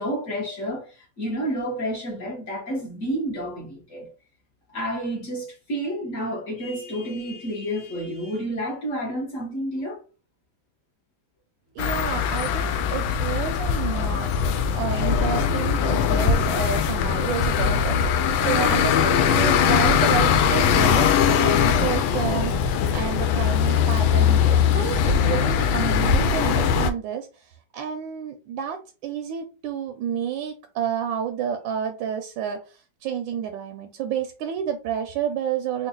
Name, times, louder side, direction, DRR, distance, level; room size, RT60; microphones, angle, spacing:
voice 1, 0.0-4.1 4.7-10.0, equal, 45° left, 1.4 m, -30 dB
voice 2, 11.7-14.3 14.7-35.9, right 8 dB, 80° right, 1.3 m, -30 dB
sound 1, 11.8-26.9, left 7 dB, 85° left, 1.3 m, -21 dB
3.9 x 2.3 x 3.7 m
omnidirectional pair, 2.1 m